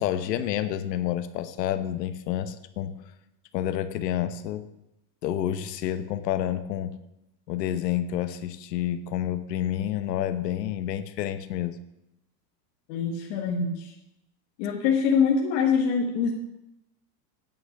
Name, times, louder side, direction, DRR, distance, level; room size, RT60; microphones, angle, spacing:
voice 1, 0.0-3.0 3.5-4.6 5.2-7.0 7.5-11.8, left 11 dB, 85° left, 12 dB, 1.1 m, -29 dB
voice 2, 12.9-13.9 14.6-16.3, left 6 dB, 45° left, -1 dB, 1.4 m, -24 dB
9.2 x 5.8 x 7.9 m, 0.88 s
supercardioid pair, 160°, 48 cm